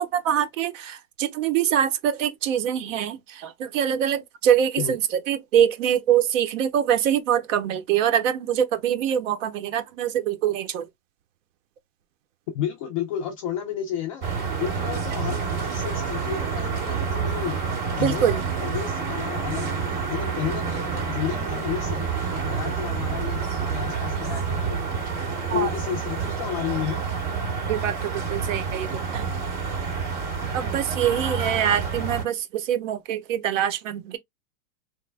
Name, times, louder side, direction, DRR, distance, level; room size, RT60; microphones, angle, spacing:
voice 1, 0.0-5.0 5.3-10.9 18.0-18.4 25.5-25.7 27.7-29.3 30.5-34.2, right 9 dB, 55° right, 0.8 m, -24 dB
voice 2, 12.5-14.3 14.6-17.6 17.9-19.8 20.1-24.8 25.5-27.1, left 10 dB, 25° left, 0.3 m, -32 dB
sound 1, 14.2-32.2, right 5 dB, 40° right, 2.1 m, -28 dB
3.2 x 2.1 x 3.3 m
supercardioid pair, 145°, 45 cm